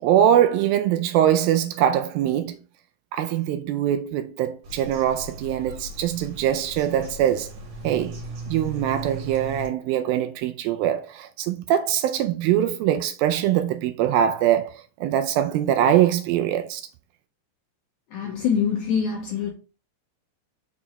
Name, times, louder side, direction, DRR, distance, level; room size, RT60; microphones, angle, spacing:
voice 1, 0.0-2.6 3.1-7.5 7.8-8.2 8.5-16.8, right 11 dB, 80° right, 2.2 m, -22 dB
Bird vocalization bird call bird song, 4.6-9.7, right 1 dB, 50° right, 2.8 m, -37 dB
voice 2, 18.1-19.5, left 7 dB, 80° left, 1.8 m, -24 dB
6.0 x 4.8 x 4.1 m
omnidirectional pair, 4.5 m